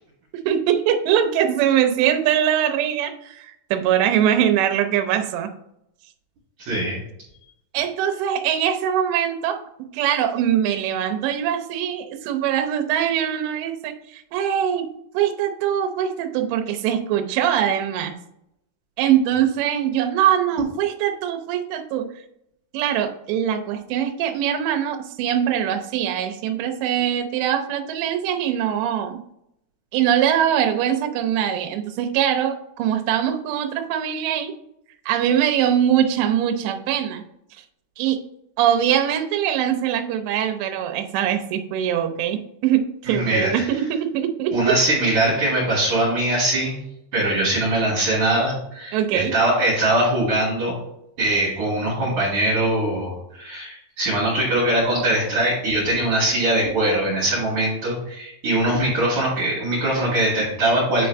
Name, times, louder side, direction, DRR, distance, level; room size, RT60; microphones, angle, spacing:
voice 1, 0.5-5.5 7.7-9.6 9.9-14.9 15.1-18.1 19.0-22.1 22.7-29.2 29.9-34.5 35.1-37.2 38.0-38.2 38.6-44.8 48.9-49.3, right 10 dB, 80° right, 6 dB, 2.7 m, -22 dB
voice 2, 6.6-7.0 43.1-43.7 44.5-46.7 47.1-50.7 51.2-61.1, right 1 dB, 50° right, -8 dB, 3.2 m, -21 dB
9.4 x 3.8 x 3.4 m, 0.78 s
omnidirectional pair, 5.5 m